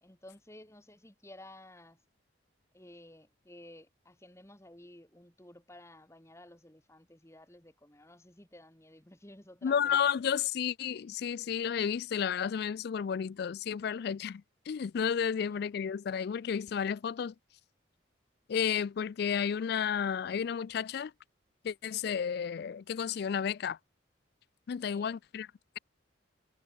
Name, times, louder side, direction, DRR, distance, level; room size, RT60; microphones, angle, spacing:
voice 1, 0.0-2.0 2.7-10.0 15.5-15.6 24.9-25.2, left 1 dB, 15° left, 2.0 m, -54 dB
voice 2, 9.6-17.3 18.5-21.1 21.6-23.8 24.7-25.5, left 7 dB, 55° left, 0.3 m, -32 dB
head